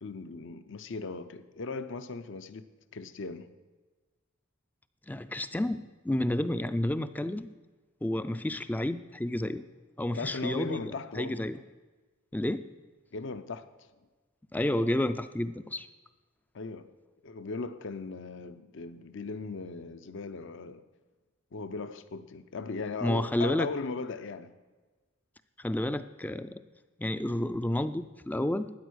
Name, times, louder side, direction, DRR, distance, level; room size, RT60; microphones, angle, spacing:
voice 1, 0.0-3.5 10.1-11.5 13.1-13.7 16.5-16.9 17.2-20.8 21.5-24.5, left 3 dB, 60° left, 0.6 m, -38 dB
voice 2, 5.1-7.5 8.0-9.6 10.0-11.6 12.3-12.7 14.5-15.9 23.0-23.7 25.6-26.6 27.0-28.7, left 1 dB, 10° left, 0.3 m, -30 dB
13.0 x 9.2 x 6.3 m
head